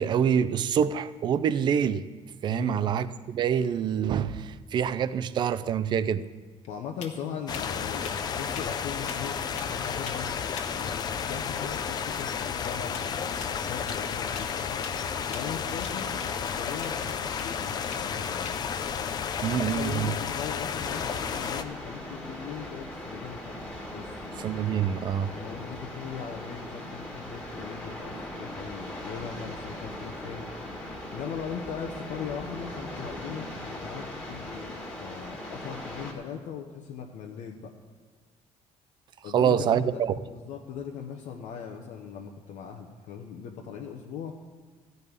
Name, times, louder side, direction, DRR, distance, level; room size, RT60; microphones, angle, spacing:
voice 1, 0.0-2.0 2.4-6.3 19.4-20.1 24.4-25.3 39.3-40.1, right 8 dB, 40° right, 14 dB, 0.4 m, -26 dB
voice 2, 2.5-2.9 6.7-10.4 10.7-10.9 11.2-14.8 15.3-17.0 17.4-18.7 19.5-23.6 23.9-24.2 25.3-30.8 31.1-37.7 39.2-40.0 40.3-44.3, left 7 dB, 80° left, 0 dB, 1.0 m, -39 dB
sound 1, 6.4-20.4, left 5 dB, 60° left, 1.4 m, -48 dB
sound 2, 7.5-21.6, left 7 dB, 35° left, 0.5 m, -32 dB
sound 3, 20.8-36.1, left 1 dB, 10° left, 1.7 m, -39 dB
14.0 x 5.4 x 9.5 m, 1.5 s
cardioid pair, 175°, 12 cm